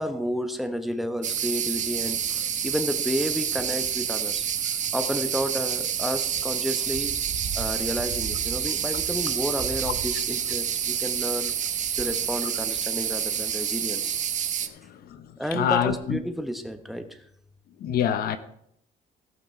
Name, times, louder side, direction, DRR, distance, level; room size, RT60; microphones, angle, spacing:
voice 1, 0.0-4.4 4.9-7.2 7.5-11.5 12.0-14.2 15.4-17.2, equal, ahead, 1.1 m, -31 dB
sound 1, 1.2-14.7, right 8 dB, 45° right, 0.9 m, -28 dB
voice 2, 14.6-16.2 17.8-18.4, left 9 dB, 65° left, 0.9 m, -27 dB
17.0 x 6.0 x 4.5 m
cardioid pair, 110°, 17 cm